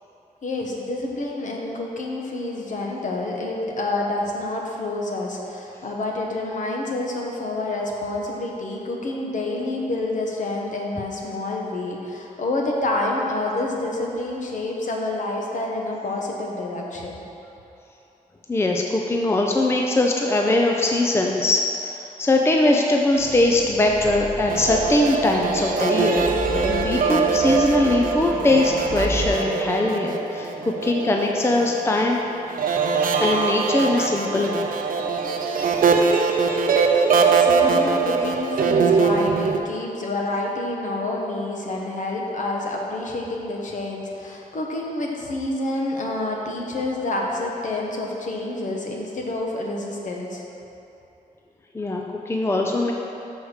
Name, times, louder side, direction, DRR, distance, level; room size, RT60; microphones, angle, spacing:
voice 1, 0.4-17.2 37.3-50.4, left 2 dB, 60° left, -1 dB, 1.1 m, -28 dB
voice 2, 18.5-30.5 30.8-32.2 33.2-34.7 51.7-52.9, left 2 dB, 15° left, 0 dB, 0.5 m, -21 dB
sound 1, 23.2-29.3, left 1 dB, ahead, 1.1 m, -34 dB
sound 2, 24.5-32.1 32.5-39.6, right 5 dB, 75° right, 0.6 m, -22 dB
6.3 x 4.6 x 6.5 m, 2.9 s
wide cardioid pair, 115°, 15 cm